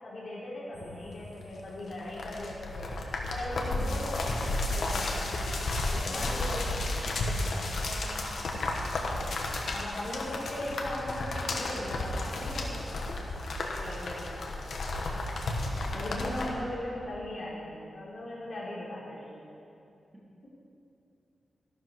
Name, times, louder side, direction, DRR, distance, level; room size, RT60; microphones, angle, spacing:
voice 1, 0.0-2.9 3.3-5.3 5.9-6.8 7.7-8.3 9.2-13.2 13.8-14.7 15.9-19.4, left 1 dB, 45° left, -6 dB, 3.7 m, -39 dB
sound 1, 0.7-16.5, left 2 dB, 70° left, 1.4 m, -33 dB
voice 2, 3.9-4.9 5.8-6.6 15.5-16.0, equal, 15° right, -5 dB, 2.2 m, -48 dB
sound 2, 4.5-8.2 8.6-9.5 9.8-9.9, left 1 dB, 15° left, 2.4 m, -53 dB
14.0 x 11.5 x 4.7 m, 2.5 s
wide cardioid pair, 160°, 0 cm